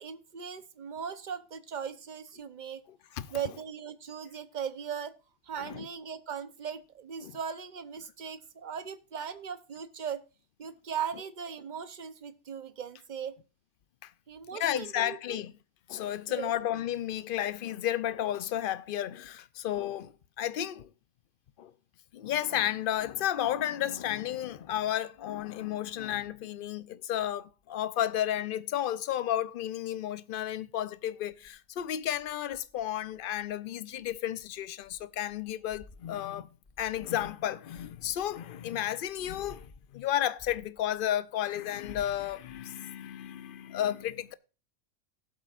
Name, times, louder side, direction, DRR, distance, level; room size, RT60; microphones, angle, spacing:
voice 1, 0.0-2.8 3.3-5.1 5.4-10.2 10.6-13.4 14.3-15.4 16.3-16.5, right 7 dB, 45° right, 0.8 m, -38 dB
voice 2, 14.5-15.5 15.9-20.9 21.6-21.7 22.1-36.5 36.8-44.3, left 11 dB, 55° left, 0.7 m, -32 dB
sound 1, 31.3-33.6 34.0-38.6 39.0-41.3 41.7-42.6, left 2 dB, 30° left, 0.9 m, -55 dB
17.5 x 7.8 x 2.4 m
omnidirectional pair, 1.2 m